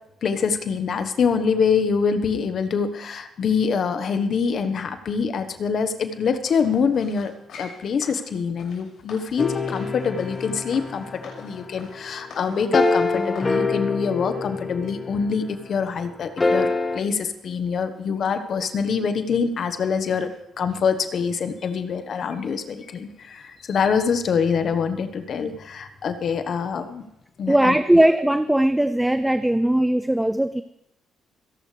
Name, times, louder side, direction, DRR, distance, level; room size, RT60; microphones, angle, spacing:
voice 1, 0.2-7.3 7.6-27.0 27.4-28.0, left 6 dB, 55° left, 9 dB, 1.2 m, -25 dB
sound 1, 6.4-13.6 14.1-14.2, left 4 dB, 75° left, 6.3 m, -45 dB
sound 2, 9.4-15.6 16.4-17.0, left 3 dB, 25° left, 1.6 m, -26 dB
voice 2, 27.5-30.6, right 1 dB, 5° right, 11 dB, 0.6 m, -19 dB
26.5 x 11.5 x 3.4 m, 0.80 s
cardioid pair, 90°, 0 cm